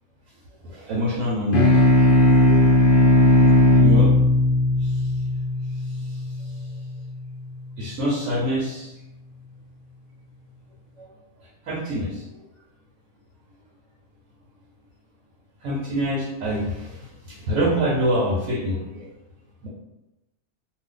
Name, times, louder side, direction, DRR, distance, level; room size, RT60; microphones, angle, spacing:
voice 1, 0.6-1.6 2.4-2.7 3.8-4.5 4.8-4.9 6.0-6.2 7.8-8.9 11.0-11.1 11.7-12.2 15.6-19.1 19.6-19.7, equal, 65° right, -5 dB, 1.0 m, -26 dB
sound 1, 1.5-6.4, left 1 dB, 55° left, 0.6 m, -17 dB
2.5 x 2.3 x 3.7 m, 0.95 s
omnidirectional pair, 1.6 m